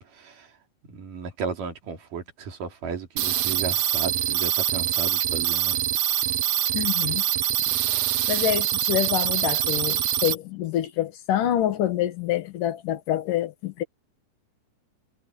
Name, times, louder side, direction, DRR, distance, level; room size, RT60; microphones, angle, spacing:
voice 1, 0.1-0.5 0.9-5.8, right 5 dB, 90° right, 4.7 m, -34 dB
sound 1, 3.2-10.3, right 11 dB, 65° right, 1.9 m, -24 dB
voice 2, 6.7-7.2 8.3-13.8, left 12 dB, 85° left, 3.1 m, -26 dB
omnidirectional pair, 3.7 m